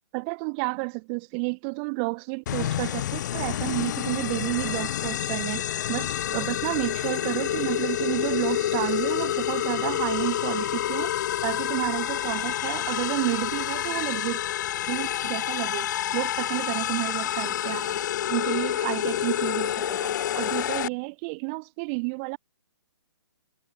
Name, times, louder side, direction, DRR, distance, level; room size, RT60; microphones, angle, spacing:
voice 1, 0.1-5.6 5.9-11.1 11.4-14.4 14.9-18.0 18.3-22.4, right 37 dB, 25° right, 2.5 m, -31 dB
sound 1, 2.5-20.9, left 12 dB, 45° left, 7.9 m, -28 dB
hypercardioid pair, 155°, 13 cm